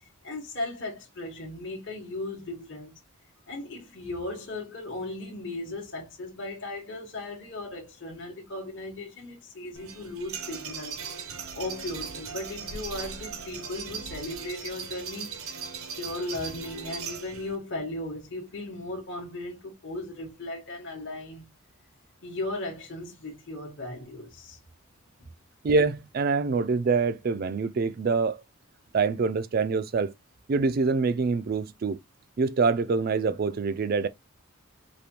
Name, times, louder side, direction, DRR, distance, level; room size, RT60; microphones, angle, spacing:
voice 1, 0.2-3.0 3.5-11.0 11.5-15.6 15.9-21.5 22.2-24.6, left 2 dB, 55° left, 1.1 m, -37 dB
sound 1, 9.8-17.6, right 6 dB, 80° right, 0.7 m, -38 dB
voice 2, 25.6-28.4 28.9-30.1 30.5-32.0 32.4-34.1, right 4 dB, 45° right, 0.3 m, -25 dB
5.0 x 2.2 x 2.9 m
head